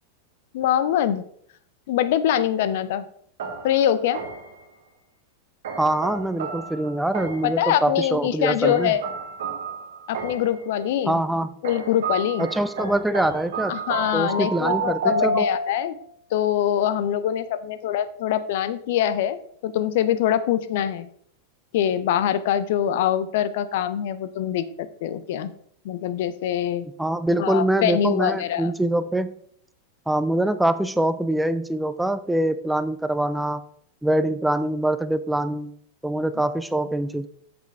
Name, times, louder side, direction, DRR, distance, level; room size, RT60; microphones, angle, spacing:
voice 1, 0.5-1.2 1.9-3.0 3.6-4.2 7.4-9.0 10.1-11.2 11.6-12.5 13.7-16.0 16.3-19.4 19.6-21.1 21.7-25.5 25.8-26.9 27.4-28.7, left 10 dB, 50° left, 14 dB, 0.5 m, -24 dB
sound 1, 3.4-4.6 5.6-7.6 8.6-10.6 11.6-15.9, right 3 dB, 60° right, 1.8 m, -30 dB
voice 2, 5.8-8.9 11.1-11.6 12.4-13.7 14.1-15.5 27.0-29.4 30.1-33.6 34.0-35.7 36.0-37.3, right 1 dB, 5° right, 12 dB, 0.4 m, -24 dB
8.0 x 6.8 x 3.4 m, 0.65 s
figure-of-eight pair, 90°, 0 cm